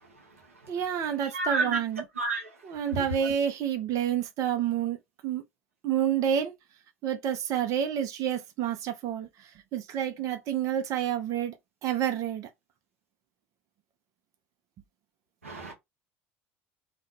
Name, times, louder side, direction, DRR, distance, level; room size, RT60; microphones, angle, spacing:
voice 1, 0.7-2.0 2.6-5.0 5.2-5.4 5.8-6.5 7.0-9.3 9.7-11.5 11.8-12.5, right 9 dB, 50° right, 0.7 m, -29 dB
voice 2, 1.3-1.8 2.2-2.5 15.4-15.7, right 3 dB, 90° right, 0.7 m, -29 dB
2.5 x 2.2 x 3.1 m
figure-of-eight pair, 65°, 7 cm